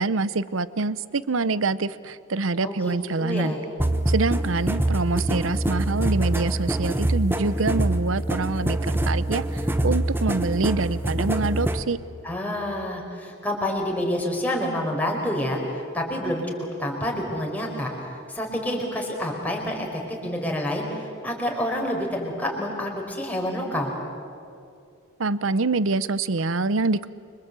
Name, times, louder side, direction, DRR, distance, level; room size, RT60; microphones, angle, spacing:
voice 1, 0.0-3.5 4.1-12.0 25.2-27.1, right 3 dB, 75° right, 16 dB, 0.8 m, -25 dB
voice 2, 2.6-3.6 12.2-15.6 15.9-17.9 18.3-23.9, left 1 dB, 10° left, -1 dB, 4.8 m, -28 dB
sound 1, 3.8-11.8, right 1 dB, 10° right, 1.1 m, -25 dB
29.0 x 25.0 x 8.2 m, 2.5 s
head